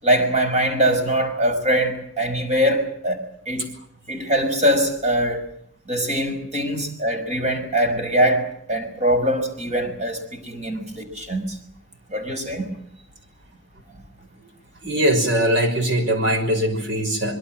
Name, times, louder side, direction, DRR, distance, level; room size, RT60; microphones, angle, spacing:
voice 1, 0.0-3.7 4.1-5.5 5.9-11.6 12.1-12.7, right 1 dB, 35° right, 5.6 m, -22 dB
voice 2, 14.8-17.4, right 1 dB, 65° right, 5.9 m, -21 dB
25.5 x 22.5 x 7.5 m
head